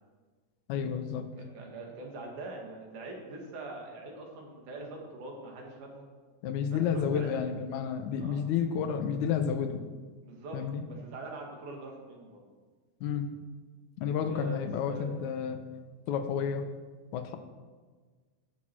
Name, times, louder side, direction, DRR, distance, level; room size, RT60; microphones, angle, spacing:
voice 1, 0.7-1.3 6.4-9.8 10.5-10.8 13.0-13.3 14.0-15.6 16.1-16.6 17.1-17.4, left 7 dB, 75° left, 6 dB, 2.0 m, -31 dB
voice 2, 1.4-6.0 6.7-7.3 8.2-8.4 10.2-10.6 10.8-12.4 14.3-15.1, right 2 dB, 65° right, 0 dB, 3.2 m, -43 dB
15.5 x 6.1 x 4.6 m, 1.4 s
omnidirectional pair, 3.9 m